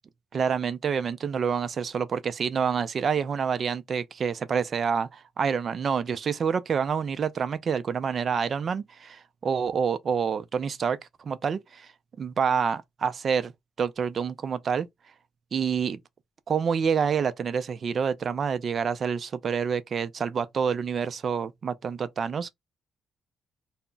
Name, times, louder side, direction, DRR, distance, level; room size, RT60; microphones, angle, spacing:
voice 1, 0.3-11.9 12.2-13.5 13.8-14.9 15.5-16.0 16.5-22.5, right 6 dB, 50° right, 0.4 m, -27 dB
2.2 x 2.0 x 3.8 m
cardioid pair, 90°, 0 cm